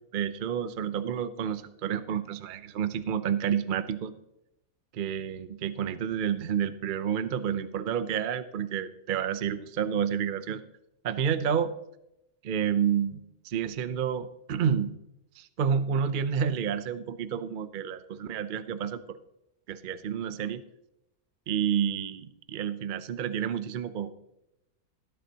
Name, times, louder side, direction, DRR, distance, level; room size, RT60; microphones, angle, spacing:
voice 1, 0.1-4.1 4.9-10.6 11.0-11.7 12.4-14.9 15.4-19.2 19.7-20.6 21.5-24.1, right 8 dB, 75° right, 12 dB, 0.4 m, -29 dB
17.5 x 11.0 x 2.9 m, 0.86 s
omnidirectional pair, 1.7 m